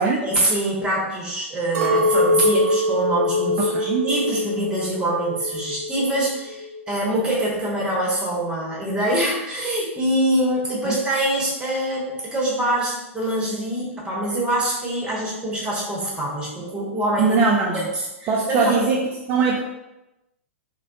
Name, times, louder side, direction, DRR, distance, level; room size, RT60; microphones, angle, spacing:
voice 1, 0.0-17.4 17.7-18.9, right 1 dB, 10° right, -4 dB, 1.1 m, -24 dB
Chink clink, 1.7-6.1 6.4-7.2, left 1 dB, 45° right, 0.8 m, -23 dB
voice 2, 3.6-4.1 10.8-11.0 17.2-17.9 18.3-19.0 19.3-19.6, right 5 dB, 30° right, -1 dB, 0.4 m, -21 dB
3.2 x 2.1 x 2.5 m, 0.95 s
figure-of-eight pair, 105°, 8 cm